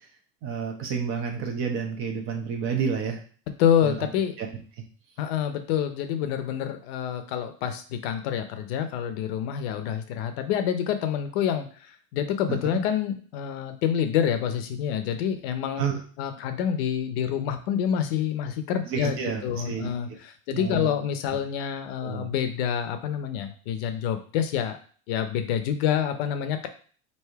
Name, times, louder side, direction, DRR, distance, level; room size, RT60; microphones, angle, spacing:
voice 1, 0.4-3.2 3.8-4.1 4.4-4.5 12.5-12.6 15.8-16.0 18.9-19.9 20.5-20.9 22.0-22.3, right 6 dB, 35° right, 2 dB, 0.9 m, -29 dB
voice 2, 3.6-4.3 5.2-15.8 16.2-24.8 25.1-26.7, left 9 dB, 55° left, 8 dB, 0.7 m, -27 dB
3.4 x 2.7 x 4.5 m, 0.43 s
supercardioid pair, 150°, 36 cm